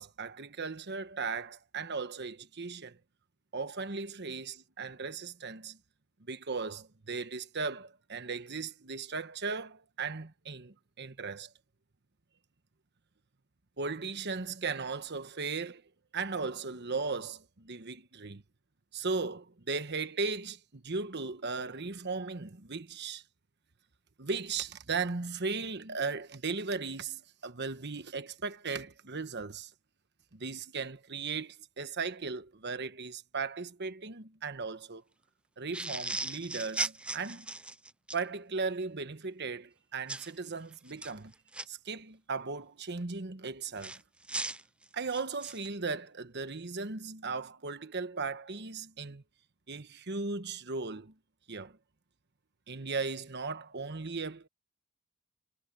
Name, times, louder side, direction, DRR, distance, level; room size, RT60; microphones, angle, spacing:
voice 1, 0.0-3.0 3.5-5.8 6.2-11.5 13.8-15.8 16.1-18.4 18.9-23.2 24.2-29.7 30.3-35.0 35.6-37.5 38.1-41.3 41.7-44.0 44.9-49.2 49.7-51.1 51.5-51.8 52.7-54.5, right 4 dB, 50° right, 1.2 m, -37 dB
sound 1, 35.7-38.2 40.1-40.3 40.9-41.6 43.8-45.7, right 2 dB, 5° right, 0.3 m, -37 dB
head